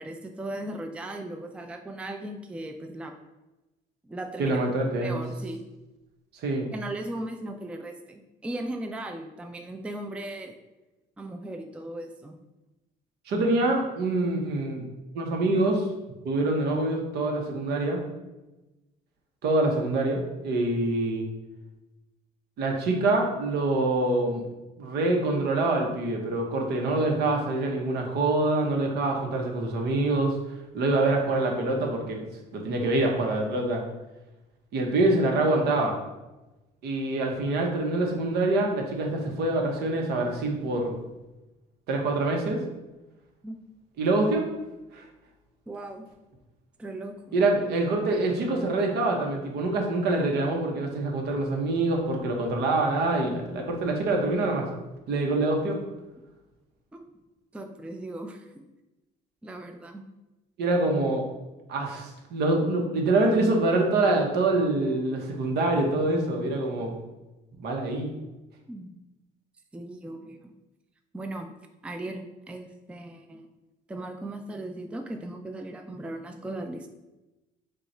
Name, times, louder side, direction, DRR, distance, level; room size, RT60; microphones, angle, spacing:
voice 1, 0.0-3.1 4.0-4.6 5.0-5.7 6.7-10.5 11.2-12.4 43.4-43.6 45.7-46.1 46.8-47.4 56.9-57.0 57.5-58.7 59.4-60.1 68.7-69.0 69.7-70.5 71.1-71.5 71.8-73.5 73.9-76.9, right 1 dB, 5° right, 5 dB, 0.3 m, -37 dB
voice 2, 4.4-5.2 6.4-6.7 13.3-14.9 15.1-15.9 16.2-18.0 19.4-21.3 22.6-24.4 24.8-30.4 30.7-32.2 32.5-33.8 34.7-36.0 36.8-40.9 41.9-42.6 44.0-44.5 44.9-45.0 47.3-54.7 55.1-55.8 60.6-61.2 61.7-66.9 67.6-68.1, right 2 dB, 75° right, 2 dB, 1.0 m, -25 dB
5.1 x 2.4 x 4.3 m, 1.0 s
cardioid pair, 110°, 17 cm